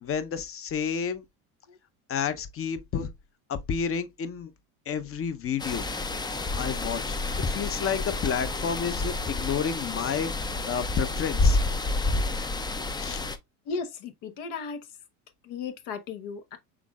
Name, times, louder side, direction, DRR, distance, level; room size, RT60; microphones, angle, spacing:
voice 1, 0.0-1.2 2.1-3.1 3.5-4.5 4.9-5.8 6.6-7.2 7.5-10.3 10.6-11.6 13.0-13.2, left 7 dB, 30° left, 0.8 m, -30 dB
sound 1, 5.6-13.4, left 2 dB, 10° left, 0.4 m, -29 dB
voice 2, 13.7-14.8 15.4-16.6, left 5 dB, 70° left, 1.1 m, -35 dB
6.0 x 3.7 x 2.4 m
supercardioid pair, 85°, 42 cm